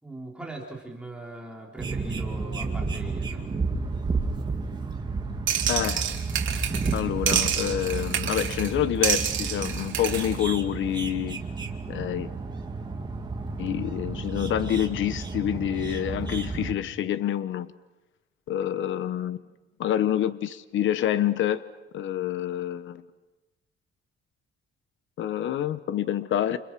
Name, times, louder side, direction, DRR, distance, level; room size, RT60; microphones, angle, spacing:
voice 1, 0.0-3.4, right 2 dB, 5° right, 3.7 m, -40 dB
sound 1, 1.8-16.7, right 4 dB, 20° right, 2.5 m, -32 dB
sound 2, 5.5-7.0 7.3-8.7 9.0-10.3, right 9 dB, 70° right, 3.3 m, -28 dB
voice 2, 5.7-6.1 6.9-11.4 11.9-12.3 13.6-17.7 18.5-19.4 19.8-21.6 21.9-23.0 25.2-26.6, left 11 dB, 70° left, 1.0 m, -27 dB
29.5 x 29.5 x 6.1 m
cardioid pair, 165°, 21 cm